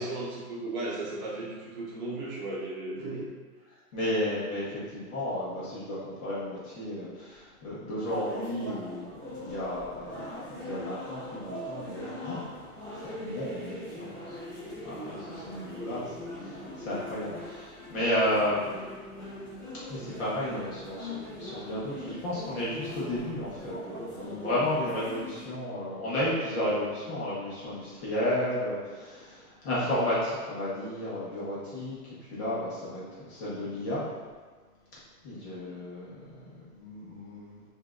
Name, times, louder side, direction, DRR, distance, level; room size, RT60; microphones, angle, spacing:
voice 1, 0.0-3.3 35.6-35.8, right 2 dB, 30° right, -6 dB, 0.9 m, -35 dB
voice 2, 3.9-10.3 10.6-12.6 13.0-14.4 14.8-18.7 19.9-32.0 32.3-34.0 35.2-36.5 36.8-37.6, left 1 dB, 40° left, -9 dB, 1.3 m, -33 dB
sound 1, 8.0-25.4, left 1 dB, 5° left, 1.1 m, -41 dB
5.5 x 2.8 x 2.5 m, 1.4 s
hypercardioid pair, 165°, 47 cm